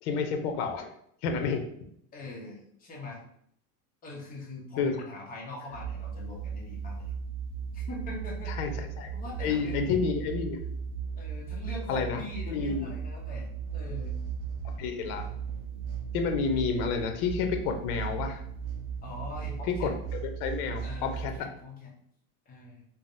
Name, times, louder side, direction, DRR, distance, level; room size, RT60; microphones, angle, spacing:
voice 1, 0.0-0.9 1.2-1.6 4.8-4.9 8.5-9.1 9.4-10.6 11.9-12.2 12.5-12.9 14.8-15.3 16.1-18.4 19.8-19.9 20.2-21.5, left 5 dB, 75° left, 5 dB, 0.6 m, -30 dB
voice 2, 2.1-3.2 4.0-7.1 7.7-8.5 9.1-9.8 11.2-13.5 13.7-14.1 19.0-19.9 20.8-21.9 22.5-22.9, left 2 dB, 20° left, -2 dB, 0.6 m, -42 dB
sound 1, 5.7-21.4, right 6 dB, 65° right, 0.6 m, -36 dB
3.3 x 2.0 x 2.6 m, 0.69 s
supercardioid pair, 130°, 45 cm